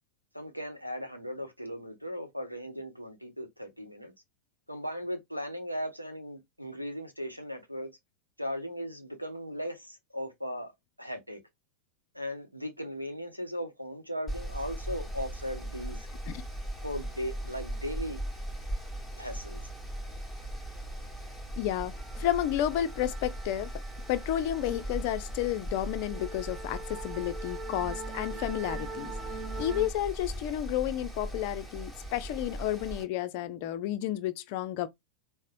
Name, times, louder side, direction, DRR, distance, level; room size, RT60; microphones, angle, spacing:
voice 1, 0.3-4.1 4.7-7.9 8.4-10.7 11.0-11.4 12.1-16.1 16.8-18.2 19.2-19.6, equal, 90° right, 0.8 m, -37 dB
Mechanical fan, 14.3-33.0, right 1 dB, ahead, 1.0 m, -39 dB
sound 1, 21.1-21.3 21.6-29.9, right 3 dB, 20° right, 0.6 m, -44 dB
voice 2, 21.6-23.7 24.1-29.1 29.6-34.9, left 12 dB, 45° left, 0.4 m, -31 dB
4.1 x 2.0 x 2.5 m
figure-of-eight pair, 90°, 0 cm